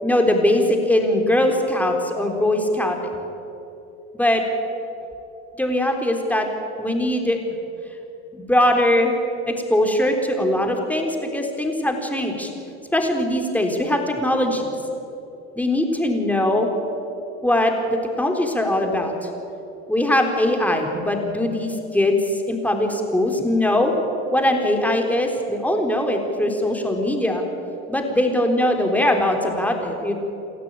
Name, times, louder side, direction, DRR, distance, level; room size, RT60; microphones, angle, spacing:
voice 1, 0.0-3.1 4.1-4.4 5.6-6.5 6.8-7.4 8.3-9.2 9.5-12.5 12.9-14.8 15.6-16.7 17.4-19.3 19.9-23.9 24.3-27.4 27.9-30.1, left 1 dB, 5° left, 3 dB, 3.8 m, -21 dB
29.0 x 13.0 x 9.0 m, 2.9 s
supercardioid pair, 105°, 32 cm